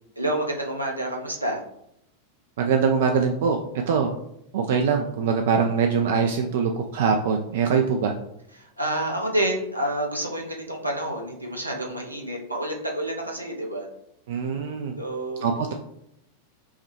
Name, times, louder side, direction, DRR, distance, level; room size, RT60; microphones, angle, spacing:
voice 1, 0.2-1.6 8.5-13.9 15.0-15.7, right 1 dB, 85° right, 0 dB, 0.7 m, -29 dB
voice 2, 2.6-3.6 3.9-4.1 4.5-8.1 14.3-14.9 15.4-15.7, right 6 dB, 55° right, 4 dB, 0.3 m, -23 dB
5.4 x 2.2 x 3.1 m, 0.78 s
figure-of-eight pair, 90°, 0 cm